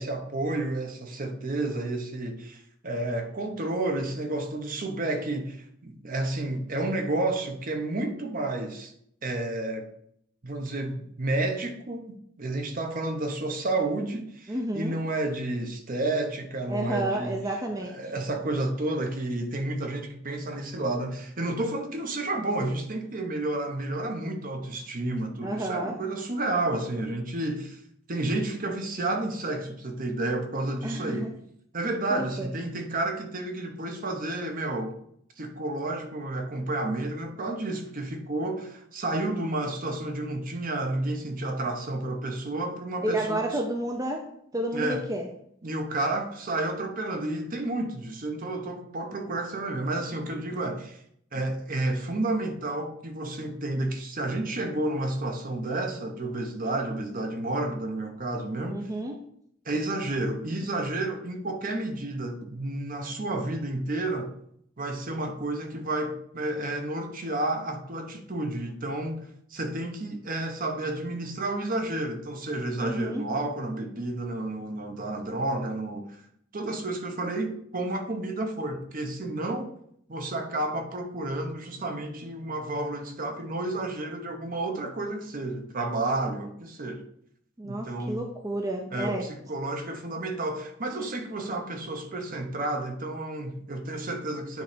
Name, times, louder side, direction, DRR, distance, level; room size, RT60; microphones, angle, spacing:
voice 1, 0.0-5.6 5.8-8.9 9.2-9.9 10.4-17.4 17.7-27.8 28.1-31.3 31.7-35.0 35.4-43.4 44.7-45.0 45.6-51.0 51.3-58.8 59.6-64.3 64.8-69.2 69.5-76.2 76.5-79.7 80.1-87.0 87.6-88.2 88.9-94.6, right 2 dB, 45° right, 4 dB, 1.0 m, -31 dB
voice 2, 14.5-15.0 16.7-18.1 25.4-26.0 30.8-31.3 32.1-32.5 43.0-44.2 44.5-45.3 58.7-59.2 72.8-73.3 87.6-89.3, right 1 dB, 15° right, 2 dB, 0.6 m, -31 dB
9.3 x 3.2 x 5.1 m, 0.68 s
head